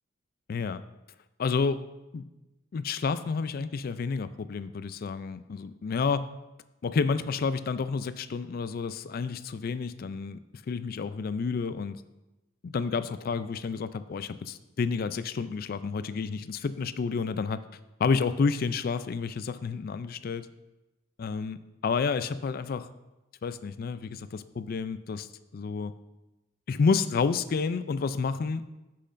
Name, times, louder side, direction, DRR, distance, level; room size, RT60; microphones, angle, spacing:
voice 1, 0.5-0.8 1.4-1.8 2.1-2.3 2.7-6.2 6.8-10.4 10.7-12.0 12.6-17.6 18.0-20.5 21.2-22.9 23.4-25.3 25.5-25.9 26.7-28.6, left 5 dB, 50° left, 13 dB, 0.3 m, -30 dB
10.0 x 7.5 x 2.6 m, 1.0 s
head